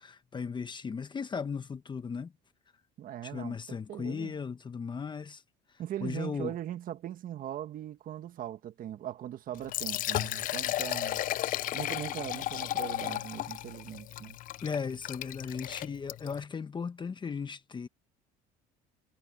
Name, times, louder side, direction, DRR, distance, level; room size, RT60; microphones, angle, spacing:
voice 1, 0.0-2.3 3.2-5.4 6.0-6.5 14.6-17.9, left 6 dB, 25° left, 1.1 m, -36 dB
voice 2, 3.0-4.3 5.8-11.2 11.7-14.4, right 11 dB, 50° right, 1.6 m, -40 dB
Liquid, 9.5-16.4, left 14 dB, 50° left, 0.4 m, -34 dB
supercardioid pair, 105°, 18 cm